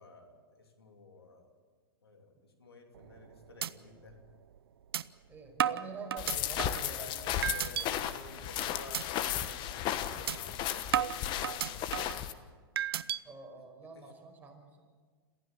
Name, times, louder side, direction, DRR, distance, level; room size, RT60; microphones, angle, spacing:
voice 1, 0.0-1.5 2.0-4.2 6.8-12.2 13.5-14.1, left 3 dB, 90° left, 3 dB, 3.1 m, -53 dB
sound 1, 2.9-3.2 3.6-3.7 4.1-4.2 4.9-5.0 5.6-6.9 7.4-7.9 8.3-8.5 8.9-9.0 9.4-9.6 10.3-10.4 10.9-12.2 12.8-13.2, right 10 dB, 75° right, 0.7 m, -32 dB
voice 2, 5.3-7.4 13.2-14.8, right 4 dB, 15° right, 1 dB, 5.3 m, -47 dB
sound 2, 6.2-12.3, left 11 dB, 40° left, 1.3 m, -35 dB
27.0 x 15.0 x 7.4 m, 1.5 s
hypercardioid pair, 110°, 13 cm